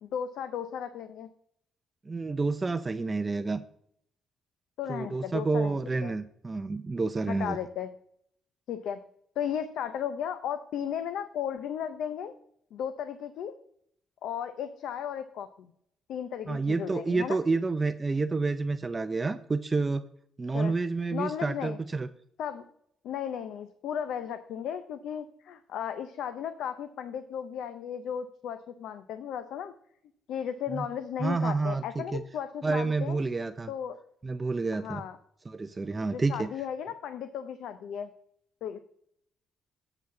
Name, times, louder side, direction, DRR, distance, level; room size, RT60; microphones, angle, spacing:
voice 1, 0.0-1.3 4.8-6.1 7.3-7.9 8.7-9.0 9.4-12.4 12.7-13.5 14.2-15.7 16.1-17.4 20.5-20.7 21.1-21.8 22.4-22.6 23.0-29.7 30.3-33.2 33.7-34.0 34.7-35.2 36.1-38.1 38.6-38.8, left 8 dB, 80° left, 10 dB, 0.5 m, -35 dB
voice 2, 2.1-3.6 4.9-7.6 16.5-20.0 20.4-22.1 30.7-30.8 31.2-32.2 32.6-33.7 34.2-35.0 35.5-36.5, right 3 dB, 25° right, 10 dB, 0.4 m, -29 dB
7.8 x 4.6 x 7.0 m, 0.68 s
cardioid pair, 90°, 0 cm